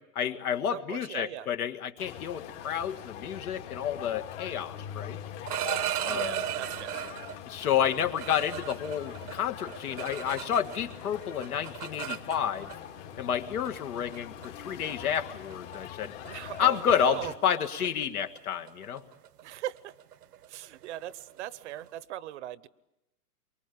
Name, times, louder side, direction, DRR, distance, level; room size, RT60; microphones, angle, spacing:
voice 1, 0.0-5.2 6.1-6.4 7.5-12.7 13.2-16.2 16.6-19.0, left 9 dB, 70° left, 7 dB, 1.9 m, -30 dB
voice 2, 0.7-1.5 6.1-7.0 16.3-17.3 19.4-19.9 20.5-22.7, right 13 dB, 50° right, 19 dB, 0.8 m, -39 dB
sound 1, 2.0-17.4, left 10 dB, 50° left, 2.9 m, -43 dB
sound 2, 5.3-7.4 7.9-11.0 11.2-12.8 13.7-13.8 14.1-14.5 14.9-15.2 15.5-15.8 16.0-16.3 16.6-21.9, right 11 dB, 80° right, 1.0 m, -36 dB
24.0 x 23.5 x 8.5 m, 0.90 s
hypercardioid pair, 145°, 45 cm